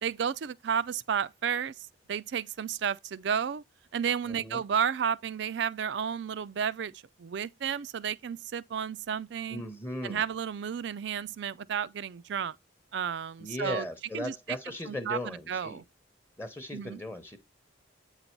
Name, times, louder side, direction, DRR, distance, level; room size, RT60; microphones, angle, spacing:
voice 1, 0.0-1.7 2.1-3.6 3.9-6.9 7.2-9.6 10.0-12.6 12.9-13.9 14.1-14.6 14.9-15.8 16.7-17.0, right 7 dB, 60° right, 0.4 m, -32 dB
voice 2, 4.2-4.6 9.5-10.2 13.4-15.8 16.4-17.4, left 1 dB, 10° left, 0.8 m, -37 dB
8.7 x 4.0 x 4.5 m
head